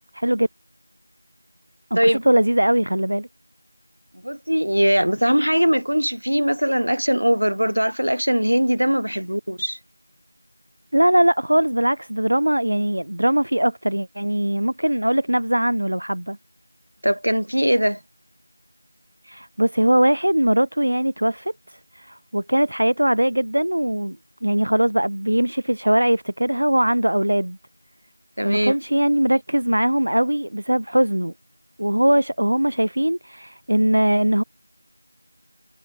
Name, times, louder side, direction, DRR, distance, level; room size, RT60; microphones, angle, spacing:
voice 1, 0.2-0.5 1.9-3.3 10.9-16.4 19.2-27.6 28.4-31.3 31.8-34.4, right 1 dB, 45° right, 1.0 m, -21 dB
voice 2, 4.2-9.8 17.0-18.0 28.4-28.7, equal, 65° right, 1.2 m, -20 dB
figure-of-eight pair, 175°, 0 cm